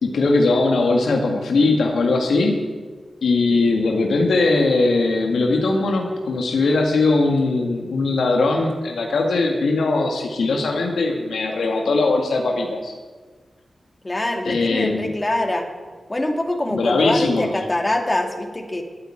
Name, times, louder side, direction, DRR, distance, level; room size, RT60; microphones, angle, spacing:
voice 1, 0.0-2.7 3.2-12.9 14.4-15.2 16.7-17.5, left 3 dB, 85° left, 2 dB, 1.9 m, -20 dB
voice 2, 14.0-15.7 16.1-18.8, left 1 dB, 25° left, 4 dB, 2.3 m, -24 dB
13.5 x 8.8 x 8.8 m, 1.4 s
cardioid pair, 50°, 0 cm